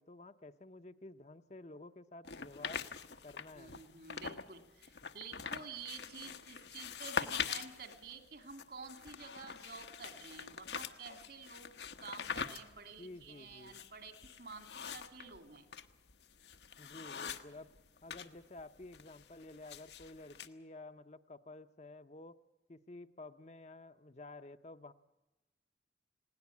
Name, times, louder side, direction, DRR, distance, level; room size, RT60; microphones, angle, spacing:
voice 1, 0.0-2.8 3.2-3.8 13.0-13.8 16.8-17.7 18.0-22.4 22.7-24.9, left 2 dB, 40° left, 9 dB, 0.7 m, -52 dB
sound 1, 2.2-4.5 4.8-18.3 18.6-20.5, left 6 dB, 75° left, 1.1 m, -43 dB
voice 2, 3.5-11.7 12.0-15.7, right 5 dB, 60° right, 8 dB, 2.4 m, -50 dB
20.5 x 17.5 x 8.4 m, 1.0 s
head